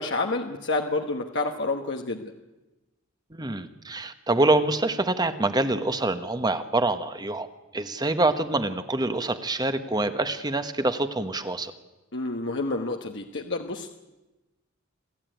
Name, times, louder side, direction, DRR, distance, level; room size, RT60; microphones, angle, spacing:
voice 1, 0.0-2.3 12.1-13.9, left 3 dB, 60° left, 3 dB, 1.3 m, -29 dB
voice 2, 3.3-7.5 7.7-11.7, right 2 dB, 20° right, 10 dB, 1.2 m, -25 dB
28.0 x 13.5 x 9.2 m, 1.1 s
head